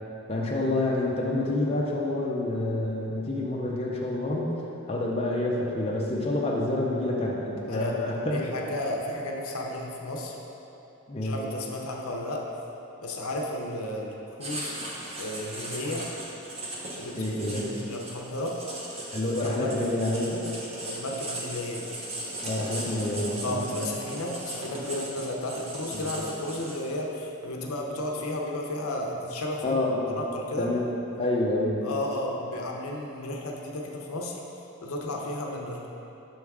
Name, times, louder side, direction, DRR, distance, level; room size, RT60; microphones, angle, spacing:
voice 1, 0.3-4.5 4.9-8.4 11.1-11.4 17.1-17.7 19.1-20.5 22.4-23.7 25.9-26.1 29.6-30.2 30.6-30.9 31.2-31.8, left 1 dB, 25° left, -4 dB, 0.5 m, -28 dB
voice 2, 8.3-10.4 11.2-12.4 13.0-14.7 15.2-16.1 17.0-18.6 19.3-19.9 20.8-21.8 23.4-29.8 30.2-30.7 31.8-34.4 34.8-35.9, left 1 dB, 75° left, 0 dB, 0.7 m, -33 dB
Writing, 14.4-27.0, right 1 dB, 30° right, 0.7 m, -38 dB
6.2 x 3.5 x 4.7 m, 3.0 s
head